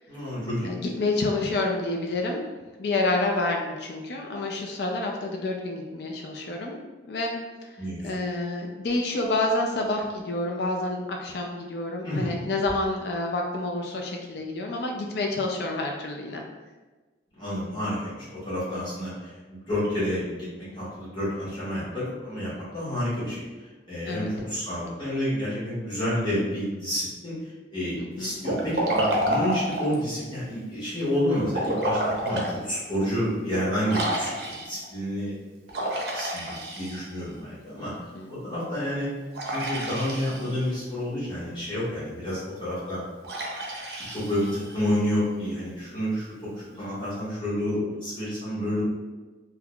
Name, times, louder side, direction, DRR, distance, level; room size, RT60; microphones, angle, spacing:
voice 1, 0.1-0.8 7.8-8.2 12.0-12.5 17.4-23.5 23.9-35.3 36.1-37.9 38.3-39.1 39.5-43.0 44.1-48.8, equal, 25° left, -11 dB, 1.5 m, -29 dB
voice 2, 0.6-2.4 2.8-6.8 7.1-7.8 8.0-16.4 24.0-24.3 28.0-28.3 38.1-38.3, left 2 dB, 65° left, 1 dB, 0.4 m, -28 dB
Liquid, 28.4-30.0 31.5-32.5 33.0-33.1 33.9-34.8 35.7-37.3 39.3-40.7 43.2-44.9, right 1 dB, 60° right, 0.6 m, -29 dB
3.6 x 2.8 x 2.3 m, 1.2 s
head